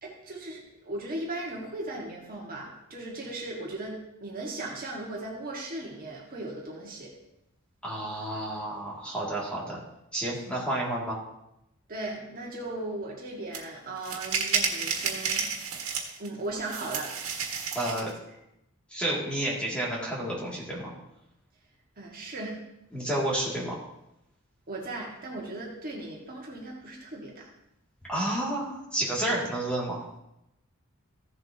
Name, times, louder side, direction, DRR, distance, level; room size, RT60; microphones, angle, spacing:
voice 1, 0.0-7.1 11.9-15.4 16.2-17.1 18.0-18.1 22.0-22.6 24.7-27.5, right 2 dB, 40° right, -2 dB, 1.8 m, -37 dB
voice 2, 7.8-9.8 10.1-11.2 17.7-18.1 18.9-20.9 22.9-23.8 28.1-30.0, right 1 dB, 5° left, -5 dB, 2.5 m, -30 dB
sound 1, 13.5-13.6 14.0-16.3 16.7-18.1, right 6 dB, 85° right, 1.7 m, -31 dB
15.0 x 7.5 x 2.9 m, 0.84 s
head